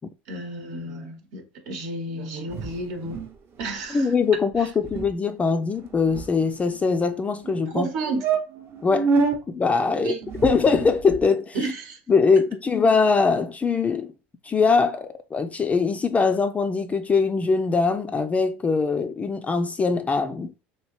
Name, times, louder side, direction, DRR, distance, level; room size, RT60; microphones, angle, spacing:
voice 1, 0.3-3.2 3.6-4.1 4.6-4.7 7.7-8.2 10.0-10.2 11.5-12.0, right 2 dB, 70° right, 0.9 m, -31 dB
sound 1, 2.5-3.3 3.6-3.8 4.0-4.3 4.5-4.6 4.8-5.1 5.7-6.8 7.4-7.5 7.9-8.0 8.2-9.4 10.2-11.2, right 4 dB, 45° right, 0.7 m, -27 dB
voice 2, 3.9-7.9 8.8-9.1 9.5-10.1 10.4-11.6 12.1-14.1 14.4-20.5, left 4 dB, 25° left, 0.3 m, -22 dB
3.0 x 2.7 x 3.0 m
hypercardioid pair, 90°, 6 cm